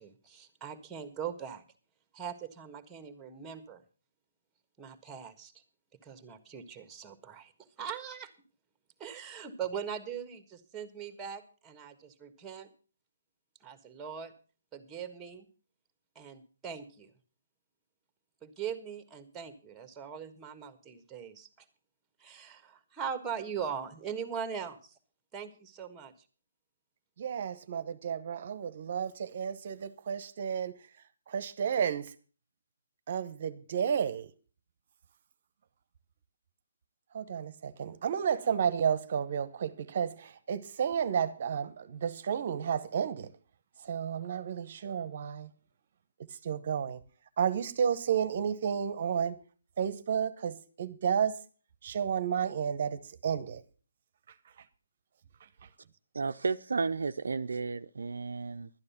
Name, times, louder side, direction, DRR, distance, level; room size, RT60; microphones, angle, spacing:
voice 1, 0.0-1.6 2.1-3.8 4.8-5.6 6.0-7.5 7.8-8.3 9.0-12.7 13.6-14.3 14.7-15.5 16.1-17.1 18.4-21.7 22.2-25.0 25.3-26.1, right 7 dB, 10° right, 1.5 m, -41 dB
voice 2, 27.2-30.7 31.3-32.1 33.1-34.3 37.1-43.3 43.8-45.5 46.3-47.0 47.4-49.4 49.8-51.4 51.8-53.6, right 7 dB, 45° right, 0.9 m, -32 dB
voice 3, 56.1-58.7, right 4 dB, 75° right, 0.5 m, -33 dB
12.0 x 9.7 x 5.7 m
hypercardioid pair, 150°, 0 cm